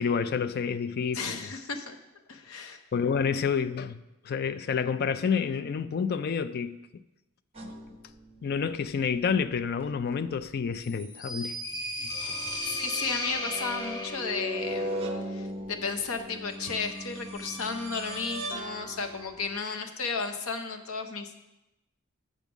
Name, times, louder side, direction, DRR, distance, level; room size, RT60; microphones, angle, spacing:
voice 1, 0.0-1.5 2.9-4.0 4.2-6.8 7.6-7.7 8.4-11.6 12.0-12.4, left 6 dB, 45° left, 0.3 m, -29 dB
voice 2, 1.1-2.0 2.3-2.8 12.7-15.0 15.3-21.4, left 5 dB, 75° left, 0.8 m, -34 dB
sound 1, 7.5-8.9 9.3-9.6 10.7-10.8 12.1-19.6, equal, 25° right, 0.8 m, -38 dB
sound 2, 10.8-14.6, left 1 dB, 20° left, 0.9 m, -35 dB
7.3 x 5.3 x 6.0 m
head